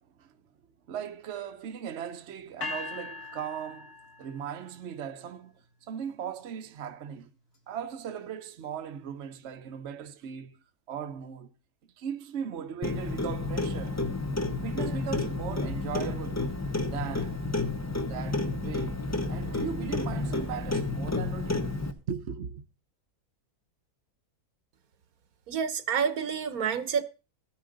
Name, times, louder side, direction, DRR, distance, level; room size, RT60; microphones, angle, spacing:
voice 1, 0.9-5.6 5.8-7.3 7.7-10.6 10.9-11.5 12.0-14.0 14.6-16.5 16.9-17.4 18.1-19.0 19.3-21.8 22.1-22.6, right 8 dB, 55° right, 1.0 m, -38 dB
sound 1, 2.6-4.7, left 3 dB, 85° left, 2.3 m, -39 dB
Clock, 12.8-21.9, left 2 dB, 15° left, 0.6 m, -31 dB
voice 2, 25.5-27.0, right 7 dB, 70° right, 1.4 m, -28 dB
14.0 x 10.0 x 3.9 m
omnidirectional pair, 1.6 m